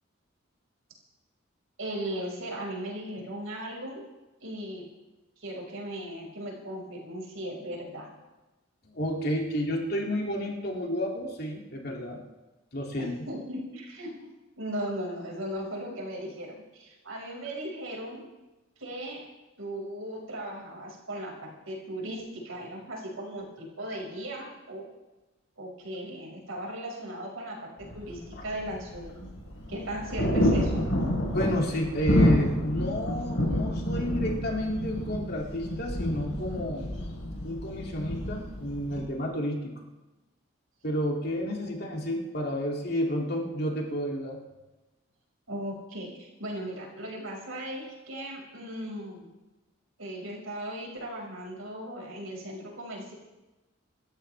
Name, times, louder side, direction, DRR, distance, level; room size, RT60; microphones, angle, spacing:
voice 1, 1.8-4.0 4.4-4.8 5.4-8.1 13.0-14.3 14.6-18.3 18.8-19.2 19.6-24.9 25.6-29.3 29.7-30.8 45.5-49.3 50.0-53.1, right 1 dB, 80° right, -2 dB, 5.6 m, -37 dB
voice 2, 8.8-12.2 12.7-13.1 28.4-28.5 31.3-36.9 37.4-39.7 40.8-44.4, equal, 50° left, -1 dB, 2.7 m, -31 dB
sound 1, 27.8-39.0, equal, 65° left, 4.4 m, -29 dB
27.5 x 13.5 x 3.5 m, 1.1 s
head